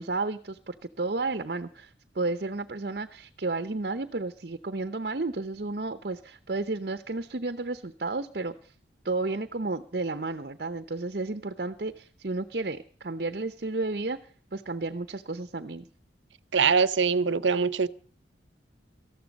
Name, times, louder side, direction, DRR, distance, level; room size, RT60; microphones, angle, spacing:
voice 1, 0.0-8.7 9.0-14.2 14.5-15.9, right 3 dB, 55° right, 0.8 m, -32 dB
voice 2, 16.5-17.9, right 5 dB, 90° right, 0.8 m, -23 dB
18.5 x 14.0 x 5.3 m
head